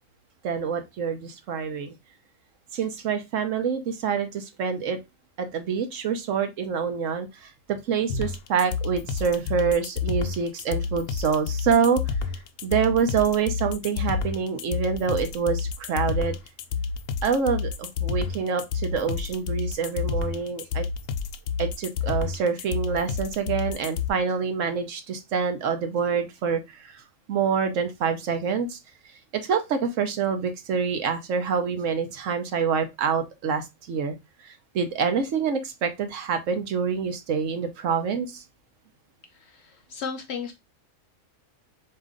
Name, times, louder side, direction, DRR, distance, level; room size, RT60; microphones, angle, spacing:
voice 1, 0.4-1.9 2.7-5.0 5.4-12.1 12.6-16.3 17.2-20.8 21.6-27.0 27.3-28.8 29.3-34.1 34.4-38.4, right 6 dB, 65° right, 7 dB, 1.0 m, -26 dB
sound 1, 8.1-24.1, left 6 dB, 80° left, 1.0 m, -29 dB
voice 2, 39.3-40.5, left 6 dB, 60° left, 6 dB, 0.8 m, -35 dB
4.1 x 2.9 x 3.6 m, 0.22 s
omnidirectional pair, 1.5 m